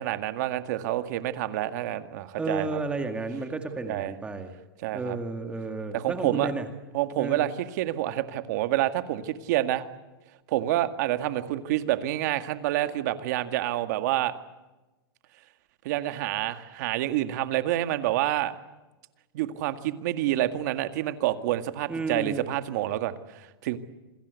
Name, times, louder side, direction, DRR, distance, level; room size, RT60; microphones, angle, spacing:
voice 1, 0.0-2.8 3.9-4.1 4.8-5.2 5.9-6.5 6.9-9.9 10.5-14.3 15.8-18.5 19.3-23.8, right 14 dB, 50° right, 10 dB, 1.9 m, -28 dB
voice 2, 2.4-4.5 4.9-6.7 7.2-7.5 21.9-22.5, right 3 dB, 10° right, 6 dB, 2.0 m, -32 dB
28.0 x 21.0 x 8.3 m, 1.1 s
supercardioid pair, 160°, 12 cm